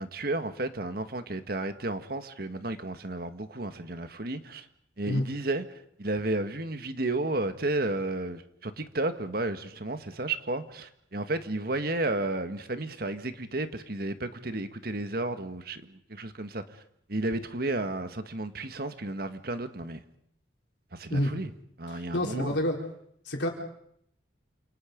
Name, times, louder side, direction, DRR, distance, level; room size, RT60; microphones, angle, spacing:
voice 1, 0.0-4.7 5.0-16.8 17.1-20.0 20.9-21.5 21.8-22.6, right 2 dB, 55° right, 9 dB, 1.7 m, -32 dB
voice 2, 22.1-22.8 23.3-23.5, left 1 dB, 70° left, 1 dB, 4.4 m, -27 dB
29.0 x 27.5 x 5.3 m, 0.70 s
head